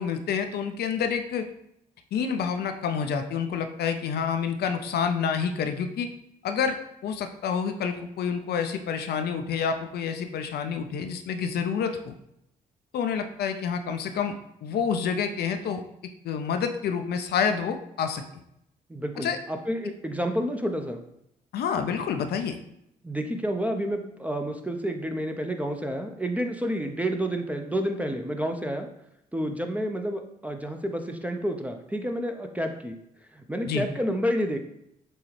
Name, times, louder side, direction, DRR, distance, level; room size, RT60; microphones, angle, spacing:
voice 1, 0.0-1.5 2.1-6.1 6.4-6.8 7.0-12.1 12.9-14.3 14.6-15.8 16.2-18.2 19.2-19.4 21.5-22.6 33.6-33.9, left 6 dB, 60° left, 6 dB, 0.5 m, -28 dB
voice 2, 18.9-21.0 23.0-28.9 29.3-33.0 33.3-34.6, equal, 10° right, 4 dB, 0.6 m, -29 dB
6.8 x 2.3 x 3.2 m, 0.77 s
hypercardioid pair, 50°, 19 cm